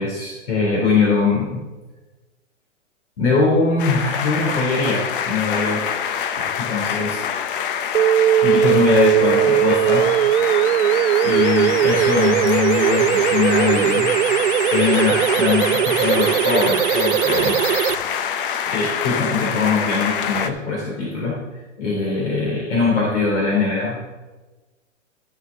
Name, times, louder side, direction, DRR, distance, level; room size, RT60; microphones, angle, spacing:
voice 1, 0.0-1.6 3.2-5.9 6.4-7.2 8.4-10.2 11.2-14.1 14.7-17.5 18.7-21.4 21.8-24.1, left 4 dB, 65° left, -3 dB, 3.2 m, -21 dB
sound 1, 3.8-20.5, left 8 dB, 45° left, 0.7 m, -26 dB
sound 2, 7.9-17.9, right 12 dB, 70° right, 0.5 m, -19 dB
14.0 x 6.4 x 3.9 m, 1.2 s
hypercardioid pair, 135°, 38 cm